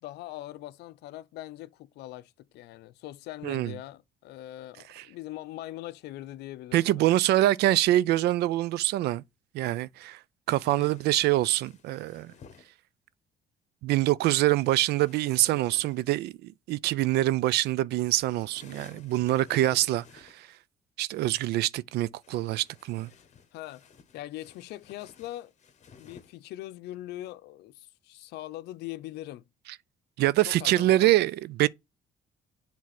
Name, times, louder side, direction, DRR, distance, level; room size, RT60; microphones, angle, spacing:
voice 1, 0.0-7.1 10.6-11.0 23.1-23.2 23.5-23.8 24.1-25.5 26.0-29.5 30.4-31.1, left 15 dB, 80° left, 0.6 m, -41 dB
voice 2, 6.7-9.2 9.5-10.2 10.5-12.3 13.8-20.5 21.0-23.1 30.2-31.3 31.6-31.7, right 15 dB, 75° right, 0.4 m, -25 dB
sound 1, 10.5-12.7 14.3-16.1 18.2-20.5 22.2-26.4, left 6 dB, 45° left, 1.3 m, -55 dB
7.5 x 3.5 x 5.9 m
cardioid pair, 110°, 17 cm